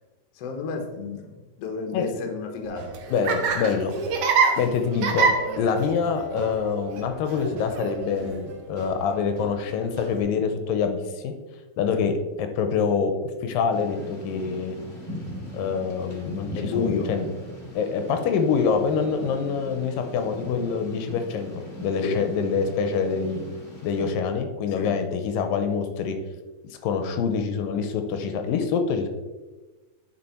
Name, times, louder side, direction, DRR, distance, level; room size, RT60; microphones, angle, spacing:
voice 1, 0.4-3.0 11.9-12.1 16.5-17.1 22.0-22.3 24.8-24.9, left 5 dB, 65° left, 4 dB, 1.7 m, -31 dB
Laughter, 2.7-10.2, right 5 dB, 70° right, 1.5 m, -27 dB
voice 2, 3.1-3.9 4.6-11.3 11.8-12.1 12.4-13.1 13.4-14.8 15.5-17.3 17.8-21.5 21.8-23.4 23.8-26.2 26.8-29.1, left 6 dB, 85° left, 7 dB, 2.4 m, -25 dB
Thunder / Rain, 13.7-24.1, equal, 30° left, 1.4 m, -40 dB
9.6 x 5.1 x 4.3 m, 1.2 s
omnidirectional pair, 4.0 m